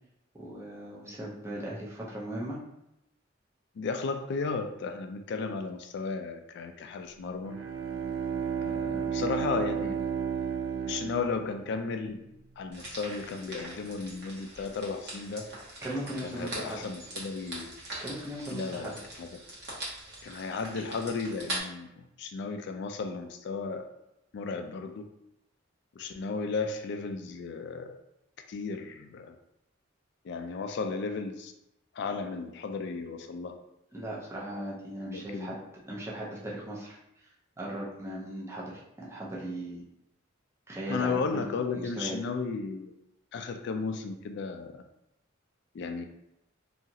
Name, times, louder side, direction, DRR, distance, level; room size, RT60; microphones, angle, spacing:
voice 1, 0.4-2.6 15.8-16.8 18.0-18.9 33.9-35.6 35.9-37.0 37.6-39.8 40.7-42.4, right 1 dB, 15° right, -5 dB, 0.6 m, -38 dB
voice 2, 3.8-7.6 8.6-10.0 10.9-12.2 12.6-15.5 16.2-17.7 18.5-19.3 20.2-23.9 24.3-25.1 26.0-28.0 28.5-29.4 30.2-31.5 31.9-33.6 35.1-35.6 40.9-42.9 43.3-44.8 45.7-46.0, left 4 dB, 60° left, 6 dB, 0.3 m, -34 dB
Bowed string instrument, 7.4-12.0, right 7 dB, 85° right, 0.4 m, -33 dB
sound 1, 12.7-21.6, right 1 dB, 55° right, 0.9 m, -42 dB
2.8 x 2.3 x 2.7 m, 0.85 s
head